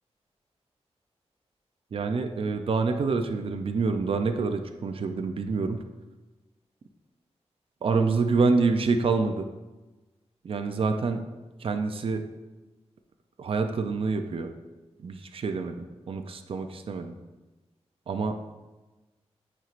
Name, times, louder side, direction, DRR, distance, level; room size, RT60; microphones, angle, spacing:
voice 1, 1.9-5.8 7.8-9.5 10.4-11.2 11.6-12.2 13.4-14.5 15.0-17.1 18.1-18.3, right 4 dB, 55° right, 6 dB, 0.5 m, -27 dB
9.1 x 4.5 x 2.5 m, 1.1 s
wide cardioid pair, 125°, 11 cm